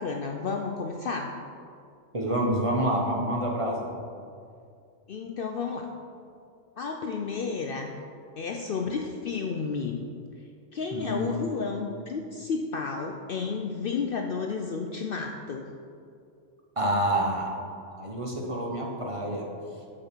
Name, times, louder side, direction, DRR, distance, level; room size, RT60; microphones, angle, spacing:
voice 1, 0.0-1.3 5.1-5.9 6.8-7.9 8.4-10.0 10.7-15.7, left 5 dB, 60° left, 3 dB, 0.6 m, -31 dB
voice 2, 2.1-3.9 10.9-11.5 16.8-17.5 17.9-19.5, right 1 dB, 30° right, -1 dB, 1.0 m, -28 dB
8.7 x 6.6 x 4.4 m, 2.4 s
omnidirectional pair, 1.3 m